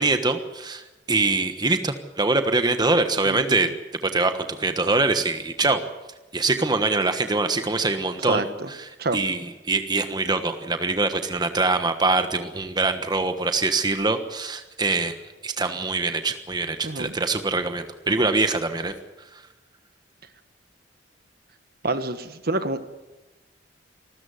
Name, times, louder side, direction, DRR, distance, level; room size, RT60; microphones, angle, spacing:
voice 1, 0.0-3.7 4.0-5.8 6.3-15.2 15.4-18.9, right 3 dB, 25° right, 8 dB, 1.3 m, -24 dB
voice 2, 3.2-3.6 8.3-8.7 9.0-9.2 16.8-17.1 21.8-22.8, right 2 dB, 55° right, 10 dB, 1.4 m, -27 dB
25.0 x 13.5 x 9.6 m, 1.1 s
head